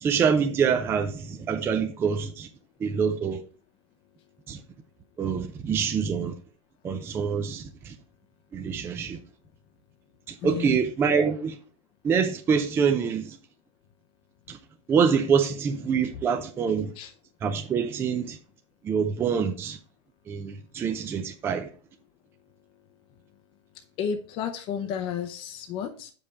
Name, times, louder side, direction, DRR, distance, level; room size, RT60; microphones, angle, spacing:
voice 1, 0.0-2.5 2.8-3.4 4.5-4.6 5.2-6.3 6.8-7.9 8.5-9.2 10.3-11.6 12.0-13.4 14.5-14.6 14.9-16.9 17.4-18.4 18.8-19.8 20.3-21.7, right 6 dB, 15° right, 0.5 m, -25 dB
voice 2, 10.4-10.8 17.0-17.1 24.0-26.1, left 8 dB, 30° left, 0.7 m, -32 dB
6.9 x 5.3 x 4.3 m
supercardioid pair, 165°, 16 cm